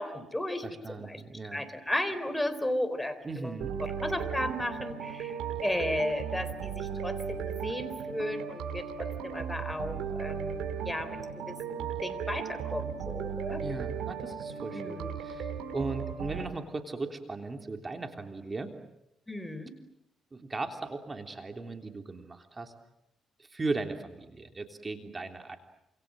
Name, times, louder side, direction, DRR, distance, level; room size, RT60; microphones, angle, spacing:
voice 1, 0.0-1.2 1.5-13.6 14.7-15.1 19.3-19.7, left 1 dB, 10° left, 10 dB, 4.0 m, -35 dB
voice 2, 0.6-1.6 3.2-3.8 13.6-18.7 20.3-22.7 23.4-25.6, right 3 dB, 25° right, 5 dB, 3.4 m, -37 dB
sound 1, 3.6-16.4, right 7 dB, 90° right, 5.9 m, -36 dB
28.0 x 27.0 x 7.7 m, 0.83 s
cardioid pair, 90°, 0 cm